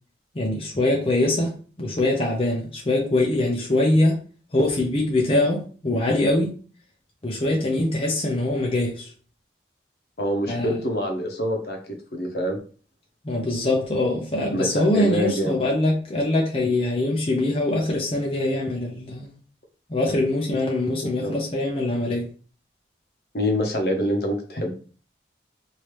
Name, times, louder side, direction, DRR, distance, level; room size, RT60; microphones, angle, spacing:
voice 1, 0.3-4.2 4.5-6.5 7.2-9.1 10.5-10.7 13.2-19.3 19.9-22.3, left 1 dB, 30° left, 0.6 m, -23 dB
voice 2, 10.2-11.8 12.1-12.6 14.5-15.6 21.0-21.3 23.3-24.7, equal, 60° left, 0.9 m, -25 dB
3.2 x 2.7 x 3.1 m
head